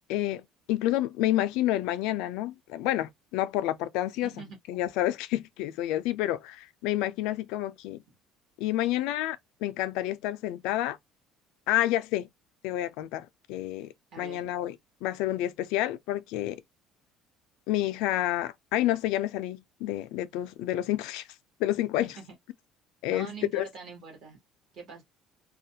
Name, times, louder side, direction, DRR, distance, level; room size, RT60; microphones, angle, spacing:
voice 1, 0.1-8.0 8.6-11.0 11.7-12.3 12.6-13.9 14.2-14.7 15.0-16.6 17.7-21.2 21.6-22.1 23.0-23.7, left 14 dB, 75° left, 0.3 m, -29 dB
voice 2, 4.2-4.6 14.1-14.5 22.0-22.3 23.1-24.4 24.7-25.0, right 4 dB, 50° right, 1.0 m, -43 dB
2.3 x 2.1 x 2.7 m
cardioid pair, 175°, 0 cm